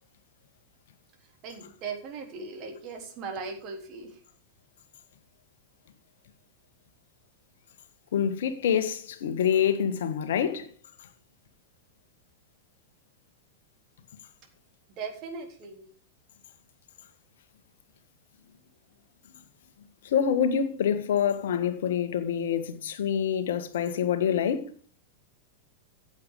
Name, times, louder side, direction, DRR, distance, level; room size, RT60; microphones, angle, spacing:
voice 1, 1.4-4.2 15.0-15.9, right 4 dB, 40° right, 3.7 m, -38 dB
voice 2, 8.1-10.7 20.0-24.6, left 8 dB, 60° left, 1.7 m, -26 dB
15.0 x 8.4 x 4.9 m
figure-of-eight pair, 90°, 0 cm